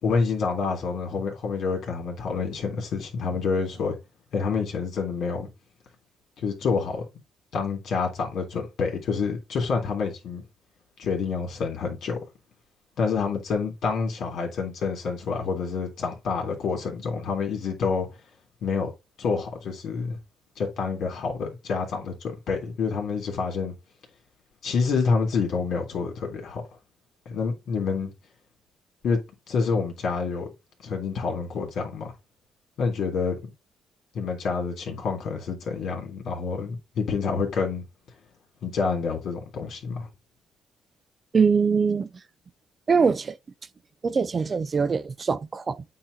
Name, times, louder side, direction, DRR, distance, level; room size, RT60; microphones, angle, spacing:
voice 1, 0.0-4.0 4.3-5.5 6.4-7.0 7.5-10.4 11.0-12.2 13.0-18.1 18.6-18.9 19.2-20.2 20.6-23.7 24.6-26.6 27.2-28.1 29.0-29.2 29.5-30.5 30.8-32.1 32.8-33.4 34.1-37.8 38.6-40.1, left 5 dB, 70° left, 3.1 m, -27 dB
voice 2, 41.3-42.1 42.9-43.4 44.0-45.8, right 5 dB, 35° right, 0.5 m, -23 dB
8.8 x 3.0 x 4.1 m
cardioid pair, 90°, 0 cm